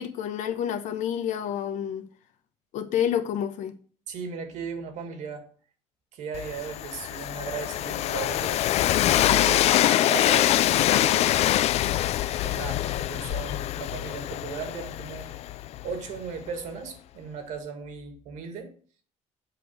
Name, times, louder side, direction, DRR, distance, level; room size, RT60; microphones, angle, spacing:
voice 1, 0.0-2.1 2.7-3.7, left 9 dB, 75° left, 1.0 m, -29 dB
voice 2, 4.1-5.5 6.1-8.6 9.2-10.5 10.8-11.4 12.4-15.3 15.8-18.7, right 6 dB, 75° right, 2.0 m, -37 dB
Train, 6.3-16.2, left 13 dB, 60° left, 0.4 m, -24 dB
7.6 x 5.0 x 6.4 m
cardioid pair, 140°, 13 cm